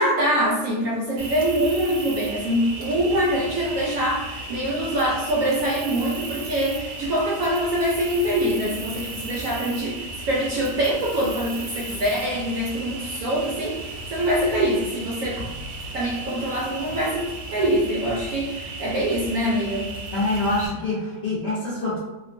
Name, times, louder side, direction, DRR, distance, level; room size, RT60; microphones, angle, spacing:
voice 1, 0.0-13.8 14.1-15.4 15.9-17.2 17.5-19.9, equal, 70° right, -4 dB, 0.8 m, -24 dB
Cricket, 1.2-20.7, right 2 dB, 90° right, 1.3 m, -35 dB
voice 2, 20.1-22.0, left 2 dB, 65° left, -8 dB, 0.7 m, -25 dB
2.9 x 2.1 x 2.5 m, 1.1 s
omnidirectional pair, 1.8 m